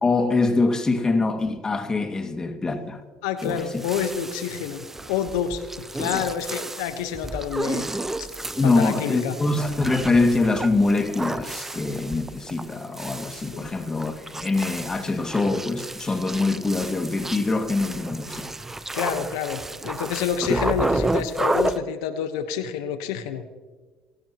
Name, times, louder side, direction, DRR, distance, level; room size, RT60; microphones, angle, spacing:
voice 1, 0.0-3.0 3.4-3.8 8.6-18.5 20.5-20.6, left 3 dB, 25° left, 2.1 m, -24 dB
voice 2, 3.2-5.6 6.0-7.9 8.6-9.3 13.5-13.7 18.9-23.4, left 8 dB, 85° left, 1.1 m, -28 dB
sound 1, 3.4-21.8, right 2 dB, 10° right, 0.9 m, -31 dB
27.5 x 16.0 x 3.0 m
supercardioid pair, 85°, 3 cm